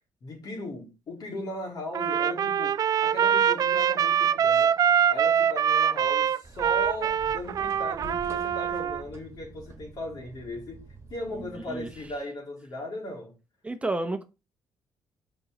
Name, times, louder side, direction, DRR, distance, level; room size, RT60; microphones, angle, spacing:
voice 1, 0.2-4.8 5.1-13.4, left 1 dB, 55° left, 3.5 m, -38 dB
Trumpet, 1.9-9.0, right 8 dB, 50° right, 0.4 m, -24 dB
sound 1, 6.4-12.2, right 3 dB, 35° right, 1.5 m, -47 dB
voice 2, 11.3-11.9 13.6-14.2, right 2 dB, 15° right, 0.9 m, -31 dB
5.4 x 5.3 x 5.2 m
cardioid pair, 95°, 8 cm